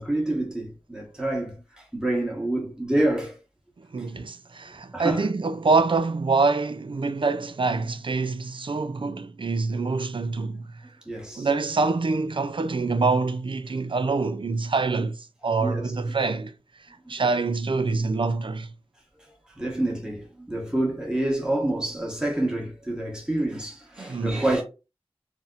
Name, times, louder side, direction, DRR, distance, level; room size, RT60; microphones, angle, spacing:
voice 1, 0.0-3.3 4.0-4.1 4.9-5.2 11.1-11.5 15.6-15.8 17.0-17.1 19.6-24.6, right 1 dB, 5° right, 1.0 m, -27 dB
voice 2, 3.8-10.8 11.4-16.5 16.9-18.7 24.0-24.4, right 4 dB, 55° right, 0.4 m, -25 dB
4.1 x 2.0 x 2.4 m
wide cardioid pair, 50°, 10 cm